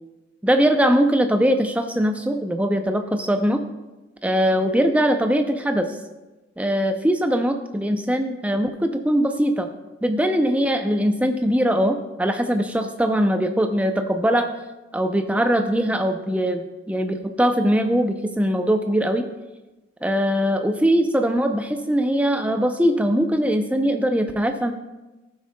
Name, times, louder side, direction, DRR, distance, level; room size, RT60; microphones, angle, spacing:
voice 1, 0.4-3.6 4.2-5.9 6.6-9.7 10.0-14.5 14.9-19.3 20.0-24.7, equal, 5° right, 6 dB, 0.4 m, -21 dB
14.0 x 6.4 x 2.2 m, 1.1 s
head